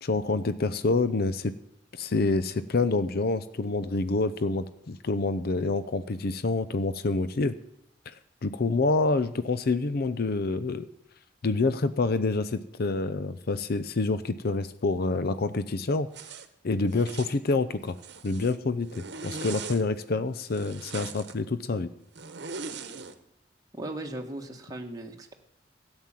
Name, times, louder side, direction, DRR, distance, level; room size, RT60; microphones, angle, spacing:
voice 1, 0.0-1.5 1.9-7.6 8.1-8.2 8.4-10.9 11.4-16.1 16.6-17.9 18.2-21.9, left 3 dB, 55° left, 14 dB, 0.6 m, -27 dB
Zipper (clothing), 16.1-16.5 16.9-17.4 17.8-18.6 18.9-19.8 20.5-21.3 22.2-23.1, right 5 dB, 65° right, 1.1 m, -40 dB
voice 2, 23.8-25.3, right 1 dB, 20° right, 2 dB, 1.4 m, -37 dB
13.0 x 8.9 x 7.5 m, 0.77 s
head